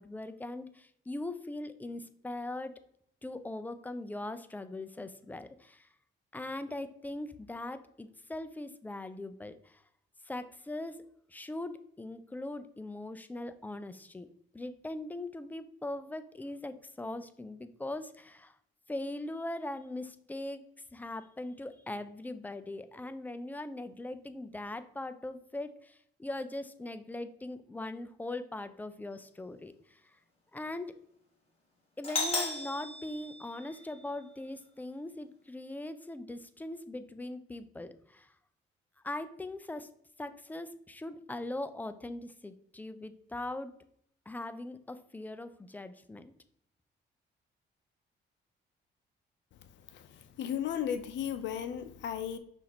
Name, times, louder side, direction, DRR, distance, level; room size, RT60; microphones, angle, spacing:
voice 1, 0.0-2.8 3.2-5.9 6.3-9.8 10.2-11.0 11.3-14.3 14.5-18.6 18.9-30.2 30.5-30.9 32.0-38.3 39.0-39.9 40.2-43.7 44.3-46.3, left 2 dB, 10° left, 11 dB, 0.3 m, -40 dB
Doorbell, 32.0-34.0, left 2 dB, 30° left, 1.5 m, -35 dB
voice 2, 50.4-52.4, left 9 dB, 65° left, 11 dB, 0.5 m, -34 dB
5.7 x 2.6 x 2.9 m, 0.69 s
cardioid pair, 90°, 20 cm